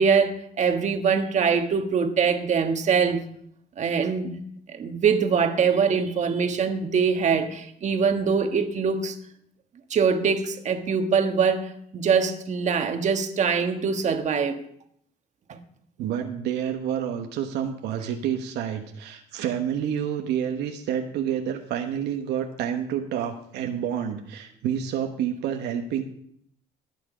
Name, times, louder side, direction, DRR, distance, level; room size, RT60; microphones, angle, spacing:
voice 1, 0.0-3.2 3.8-4.4 4.7-9.1 9.9-14.6 15.5-15.6, right 6 dB, 45° right, 6 dB, 1.5 m, -23 dB
voice 2, 16.0-26.0, right 9 dB, 80° right, 5 dB, 1.1 m, -29 dB
18.5 x 6.2 x 5.0 m, 0.67 s
cardioid pair, 110°, 17 cm